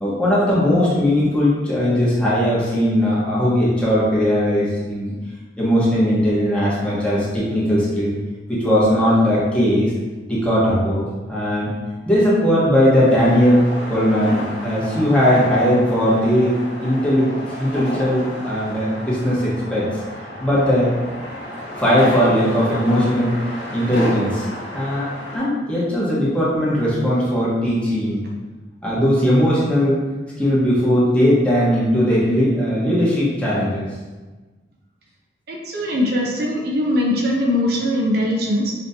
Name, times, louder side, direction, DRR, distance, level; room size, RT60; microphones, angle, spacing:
voice 1, 0.0-5.1 5.6-8.1 8.5-9.9 10.3-11.7 12.1-13.6 13.9-16.6 16.8-19.8 20.4-20.9 21.8-23.3 23.7-24.5 24.7-25.1 25.3-28.2 28.8-30.0 30.4-33.8, equal, 5° left, -8 dB, 1.2 m, -18 dB
sound 1, 13.2-25.4, equal, 85° left, 1.3 m, -31 dB
voice 2, 35.5-38.7, left 1 dB, 65° right, -1 dB, 0.7 m, -21 dB
5.1 x 3.0 x 2.8 m, 1.3 s
head